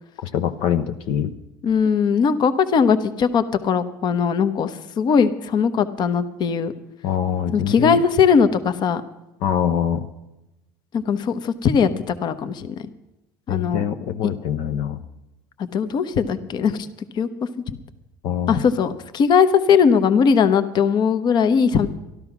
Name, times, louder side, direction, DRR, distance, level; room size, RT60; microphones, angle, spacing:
voice 1, 0.2-1.3 7.0-8.0 9.4-10.1 13.5-15.0 18.2-18.6, left 9 dB, 65° left, 7 dB, 0.9 m, -24 dB
voice 2, 1.6-6.7 7.5-9.0 10.9-12.9 13.5-13.8 15.6-16.9 17.1-17.3 17.7-17.8 18.5-21.9, left 6 dB, 45° left, 11 dB, 1.0 m, -19 dB
13.0 x 12.0 x 6.0 m, 0.96 s
supercardioid pair, 100°, 10 cm